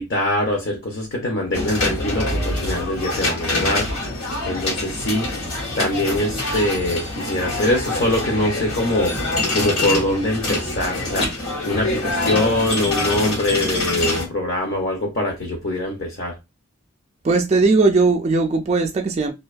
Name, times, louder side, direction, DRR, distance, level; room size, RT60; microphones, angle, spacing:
voice 1, 0.0-3.9 4.5-5.3 5.8-9.1 9.5-11.3 11.6-16.3, left 1 dB, 50° left, 0.6 m, -23 dB
sound 1, 1.5-14.3, left 2 dB, 75° left, 1.1 m, -25 dB
voice 2, 17.2-19.3, right 3 dB, 30° right, 0.3 m, -18 dB
2.5 x 2.2 x 2.3 m
head